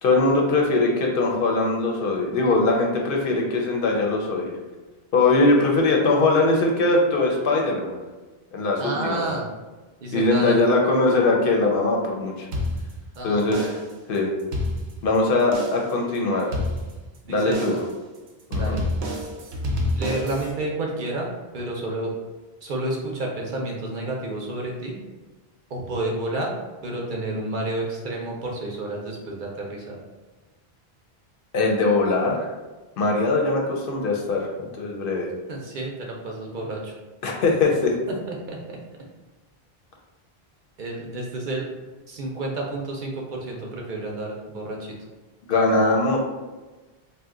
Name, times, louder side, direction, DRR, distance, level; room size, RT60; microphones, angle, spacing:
voice 1, 0.0-4.5 5.1-8.0 8.5-9.2 10.1-12.5 13.2-13.8 14.1-14.3 15.0-16.6 17.3-17.7 18.5-18.8 31.5-32.5 33.0-35.3 37.2-37.9 45.5-46.2, left 2 dB, 65° left, 0 dB, 0.7 m, -21 dB
voice 2, 8.8-9.5 10.0-10.6 13.2-13.7 17.2-17.8 18.6-18.8 19.9-22.1 22.6-25.0 25.7-26.6 26.8-30.0 35.5-36.9 38.3-38.8 40.8-41.7 42.1-44.9, right 2 dB, 60° right, -1 dB, 0.6 m, -30 dB
sound 1, 12.5-13.2 13.5-14.0 14.4-15.2 15.5-16.0 16.5-17.2 17.5-18.0 18.5-20.5, left 1 dB, 85° right, 0.9 m, -28 dB
2.7 x 2.1 x 3.6 m, 1.2 s
omnidirectional pair, 1.0 m